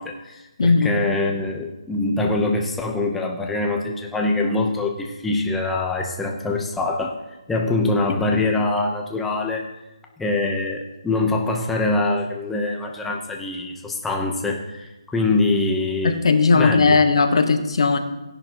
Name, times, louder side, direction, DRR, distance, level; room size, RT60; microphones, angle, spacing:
voice 1, 0.0-7.2 7.5-9.7 10.2-16.1 16.5-17.0, left 2 dB, 5° left, 1 dB, 0.8 m, -24 dB
voice 2, 0.6-0.9 16.0-18.0, left 4 dB, 60° left, 6 dB, 1.3 m, -17 dB
17.0 x 10.5 x 3.0 m, 1.0 s
hypercardioid pair, 165°, 3 cm